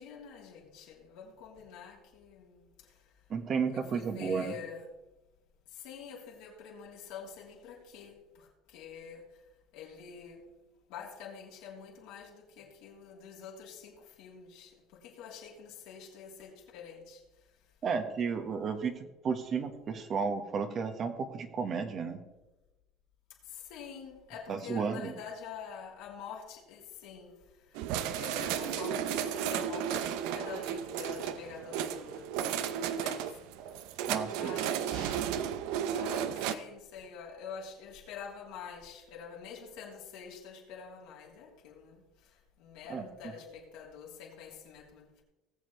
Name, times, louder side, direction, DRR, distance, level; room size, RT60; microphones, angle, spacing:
voice 1, 0.0-2.9 3.7-4.8 5.7-9.3 9.7-10.4 10.9-17.2 23.5-27.4 28.1-33.3 34.3-35.2 35.9-42.0 42.6-45.1, left 6 dB, 75° left, 3.2 m, -47 dB
voice 2, 3.3-4.5 17.8-22.2 24.5-25.1 34.1-34.5 42.9-43.1, right 5 dB, 40° right, 1.5 m, -33 dB
sound 1, 27.7-36.5, right 9 dB, 75° right, 0.6 m, -34 dB
19.0 x 7.4 x 3.3 m
supercardioid pair, 100°, 0 cm